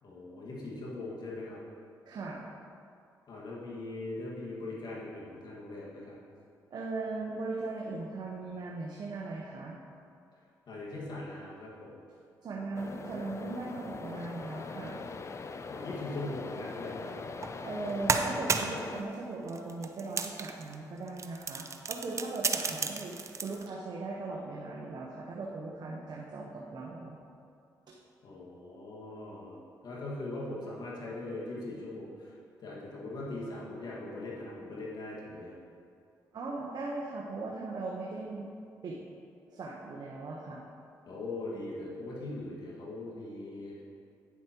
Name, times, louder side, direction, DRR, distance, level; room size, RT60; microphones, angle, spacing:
voice 1, 0.0-1.6 3.3-6.2 10.7-11.9 15.7-17.1 28.2-29.5 29.8-35.6 41.1-43.8, left 2 dB, 60° left, -5 dB, 1.8 m, -40 dB
voice 2, 2.1-2.5 6.7-9.8 12.4-15.0 17.6-23.1 23.4-27.2 27.9-28.0 36.3-38.5 38.8-39.0 39.5-40.6, right 3 dB, 55° right, -3 dB, 1.0 m, -38 dB
sound 1, 12.7-19.0, left 4 dB, 35° left, 0.5 m, -41 dB
sound 2, 17.4-17.6 17.9-18.8 19.5-20.7 21.1-23.7, right 4 dB, 35° right, 0.6 m, -32 dB
9.6 x 7.2 x 3.0 m, 2.4 s
supercardioid pair, 60°, 8 cm